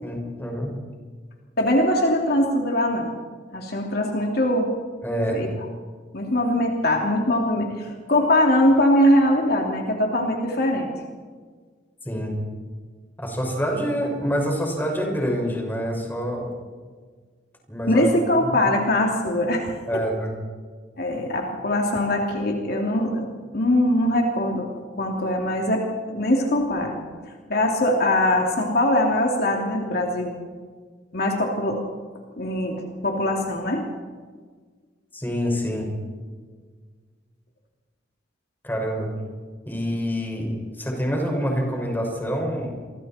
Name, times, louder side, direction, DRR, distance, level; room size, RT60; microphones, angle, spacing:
voice 1, 0.0-0.7 5.0-5.4 12.0-12.3 13.2-16.5 17.7-18.0 18.5-18.6 19.9-20.3 35.1-35.9 38.6-39.1 39.7-42.8, equal, 10° left, 0 dB, 6.0 m, -26 dB
voice 2, 1.6-3.1 3.5-4.7 5.3-5.5 6.1-10.9 17.9-20.0 21.0-23.3 23.5-24.7 25.0-27.0 27.5-30.3 31.1-31.8 32.4-33.8, left 1 dB, 55° left, 0 dB, 3.1 m, -22 dB
29.0 x 24.5 x 4.5 m, 1.5 s
head